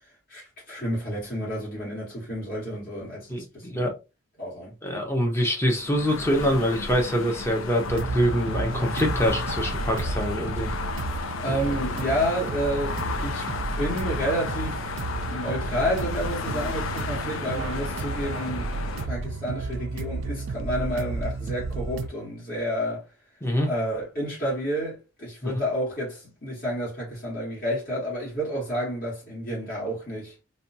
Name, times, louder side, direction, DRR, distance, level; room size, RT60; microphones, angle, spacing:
voice 1, 0.3-3.9 4.4-4.8 11.4-13.5 13.8-14.8 15.3-18.7 19.0-23.0 23.6-30.3, equal, 45° left, 1.5 m, -30 dB
voice 2, 3.3-3.9 4.8-10.7 23.4-23.7 25.4-25.5, equal, 15° left, 0.6 m, -25 dB
sound 1, 5.8-19.1, left 4 dB, 85° left, 0.4 m, -33 dB
sound 2, 7.9-22.1, right 3 dB, 70° right, 0.3 m, -32 dB
2.8 x 2.2 x 2.6 m
head